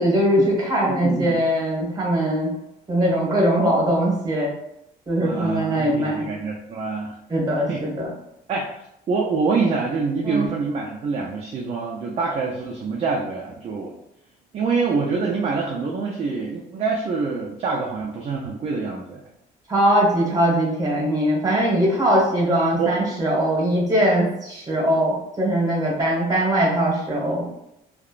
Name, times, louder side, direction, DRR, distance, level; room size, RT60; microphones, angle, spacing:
voice 1, 0.0-2.5 2.9-4.5 5.1-6.2 7.3-8.1 10.2-10.5 19.7-27.5, right 1 dB, 20° right, -3 dB, 1.2 m, -21 dB
voice 2, 0.9-1.4 5.2-7.2 7.7-7.8 8.5-8.8 9.1-14.0 14.5-19.2 22.8-22.9, right 4 dB, 40° right, -1 dB, 0.4 m, -25 dB
2.9 x 2.1 x 2.4 m, 0.81 s
cardioid pair, 110°, 17 cm